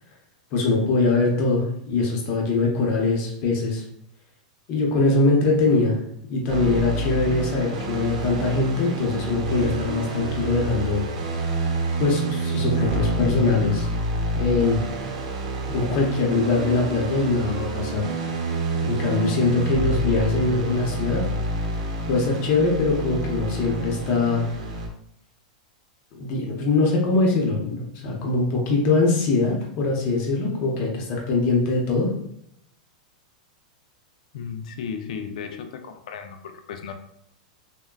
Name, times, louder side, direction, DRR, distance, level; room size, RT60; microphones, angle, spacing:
voice 1, 0.5-3.8 4.7-6.0 6.3-11.0 12.0-13.9 14.3-14.9 15.7-18.1 18.8-21.3 22.1-24.4 26.2-32.1, left 3 dB, 40° left, -1 dB, 0.7 m, -22 dB
sound 1, 6.5-24.9, right 2 dB, 70° right, 0.7 m, -28 dB
voice 2, 34.3-36.9, left 6 dB, 75° left, 6 dB, 0.4 m, -35 dB
3.6 x 2.2 x 2.2 m, 0.75 s
supercardioid pair, 150°, 4 cm